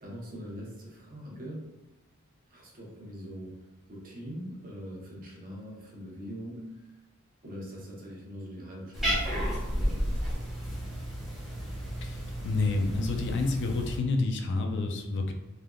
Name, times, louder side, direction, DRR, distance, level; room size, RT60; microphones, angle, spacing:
voice 1, 0.0-1.6 2.5-3.5 3.9-7.0 7.4-10.2, equal, 40° right, -3 dB, 0.8 m, -42 dB
Cat, 8.9-14.0, equal, ahead, 0.9 m, -32 dB
voice 2, 12.0-15.3, left 3 dB, 55° left, 4 dB, 0.4 m, -29 dB
3.4 x 2.5 x 2.3 m, 1.1 s
head